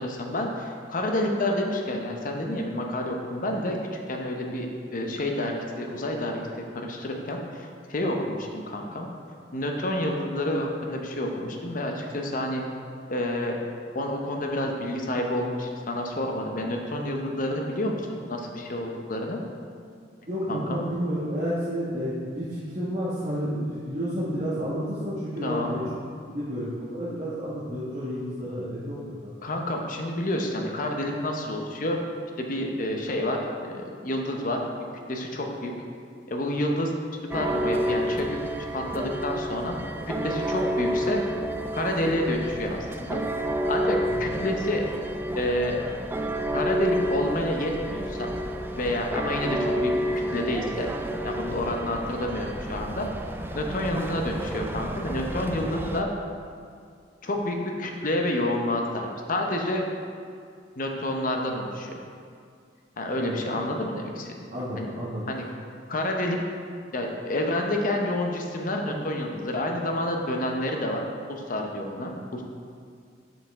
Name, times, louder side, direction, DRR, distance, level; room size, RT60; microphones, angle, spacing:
voice 1, 0.0-3.8 4.1-9.1 9.5-12.6 13.1-13.6 13.9-19.4 20.5-20.8 25.4-25.7 29.4-32.0 32.4-33.5 33.7-34.6 35.1-35.7 36.3-36.9 37.3-38.4 38.7-39.8 40.1-41.2 41.7-43.2 43.7-44.8 45.3-45.8 46.5-48.3 48.7-50.9 51.2-53.1 53.5-56.1 57.2-59.8 60.8-61.9 63.0-64.3 64.8-64.9 65.3-65.4 65.9-66.4 66.9-71.0 71.3-72.4, left 1 dB, 50° left, 2 dB, 0.8 m, -29 dB
voice 2, 20.3-25.8 26.3-29.1 63.2-63.6 64.5-65.3, equal, 40° right, -11 dB, 1.3 m, -30 dB
sound 1, 37.3-56.0, equal, 10° right, 0.3 m, -30 dB
7.2 x 5.6 x 3.6 m, 2.2 s
head